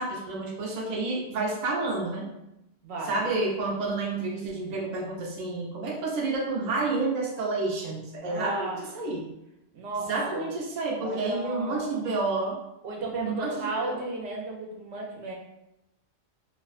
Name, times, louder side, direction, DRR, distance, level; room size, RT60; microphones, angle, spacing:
voice 1, 0.0-2.3 3.0-9.3 10.1-12.6 13.2-14.0, right 3 dB, 50° right, -2 dB, 0.5 m, -30 dB
voice 2, 2.8-3.2 8.2-8.8 9.7-10.5 11.0-12.0 12.8-15.3, right 2 dB, 80° right, -1 dB, 0.8 m, -34 dB
2.3 x 2.2 x 2.4 m, 0.88 s
omnidirectional pair, 1.1 m